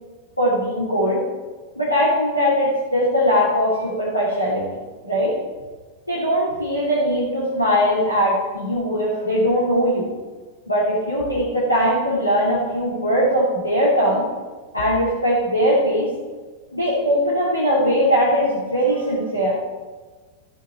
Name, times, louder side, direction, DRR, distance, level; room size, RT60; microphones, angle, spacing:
voice 1, 0.4-1.2 1.7-4.7 5.0-5.3 6.1-10.1 10.7-14.3 14.7-16.1 16.7-19.6, equal, 85° left, -7 dB, 3.2 m, -20 dB
14.5 x 9.1 x 4.5 m, 1.3 s
figure-of-eight pair, 90°, 0 cm